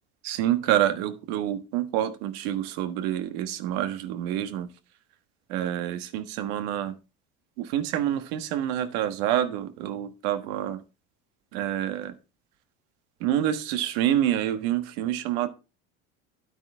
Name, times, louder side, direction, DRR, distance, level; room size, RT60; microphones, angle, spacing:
voice 1, 0.2-4.7 5.5-6.9 7.6-10.8 11.5-12.1 13.2-15.5, right 11 dB, 80° right, 9 dB, 1.5 m, -27 dB
10.0 x 8.9 x 3.6 m, 0.29 s
supercardioid pair, 115°, 31 cm